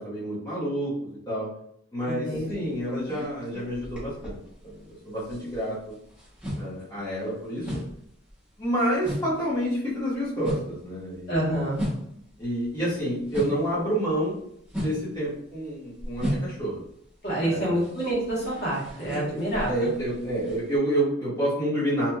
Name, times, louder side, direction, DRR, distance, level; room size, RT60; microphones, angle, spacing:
voice 1, 0.0-1.5 1.9-4.4 4.6-6.0 6.5-7.8 8.6-11.4 12.4-14.4 14.8-16.8 17.4-17.8 19.7-22.1, right 1 dB, 20° left, -10 dB, 1.2 m, -28 dB
voice 2, 2.1-2.7 11.3-11.8 17.2-19.9, right 1 dB, 55° left, -7 dB, 1.3 m, -27 dB
sound 1, 2.5-4.9 5.2-13.8 14.1-20.8, equal, 5° right, 0.9 m, -35 dB
2.9 x 2.5 x 2.3 m, 0.70 s
head